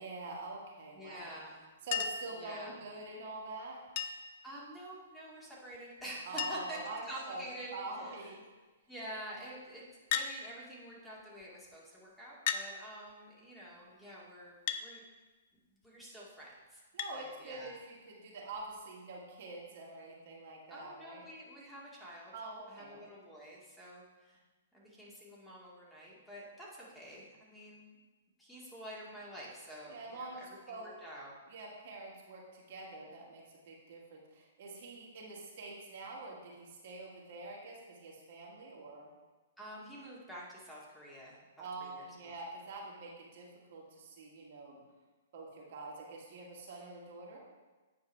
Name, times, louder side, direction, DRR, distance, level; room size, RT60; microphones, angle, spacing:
voice 1, 0.0-1.4 1.8-3.8 6.3-7.4 7.7-8.4 16.9-21.2 22.3-23.0 29.9-30.9 31.5-39.1 41.6-44.8 45.3-47.4, right 2 dB, 55° right, -3 dB, 1.9 m, -45 dB
voice 2, 0.9-1.7 2.3-2.8 4.4-8.3 8.9-9.8 10.1-15.0 15.7-16.8 17.1-17.8 20.7-22.3 22.7-24.4 24.7-27.9 28.4-31.3 39.6-42.3, right 1 dB, 5° left, -6 dB, 2.1 m, -48 dB
Chink clink, 1.9-2.4 4.0-4.4 5.7-5.8 6.0-6.1 6.4-6.8 7.6-8.0 10.1-10.4 11.4-11.5 12.5-12.7 14.7-14.9 17.0-17.2 18.6-18.7, left 8 dB, 50° left, 0.5 m, -35 dB
9.0 x 4.7 x 4.6 m, 1.3 s
hypercardioid pair, 120°, 0 cm